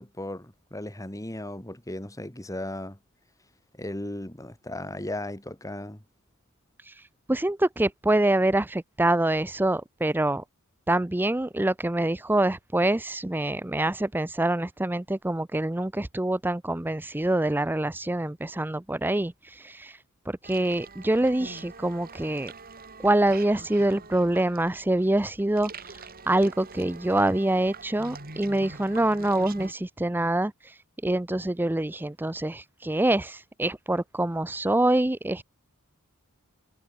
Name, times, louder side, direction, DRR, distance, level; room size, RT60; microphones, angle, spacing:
voice 1, 0.0-3.0 3.7-6.0, left 1 dB, 15° left, 2.6 m, -36 dB
voice 2, 6.8-10.4 10.9-22.5 23.0-35.4, right 1 dB, 10° right, 0.5 m, -25 dB
sound 1, 20.4-29.7, right 4 dB, 45° right, 5.0 m, -44 dB
head